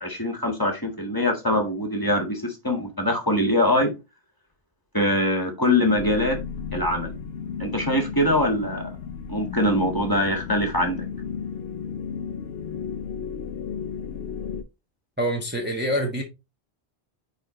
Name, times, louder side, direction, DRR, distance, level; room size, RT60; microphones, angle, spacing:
voice 1, 0.0-3.9 4.9-6.4 6.7-7.1 7.6-8.9 9.3-11.0, left 1 dB, 20° left, 1.6 m, -23 dB
sound 1, 6.0-14.6, left 6 dB, 70° left, 0.9 m, -34 dB
voice 2, 15.2-16.2, equal, 10° right, 1.2 m, -25 dB
8.9 x 4.0 x 3.1 m
omnidirectional pair, 1.1 m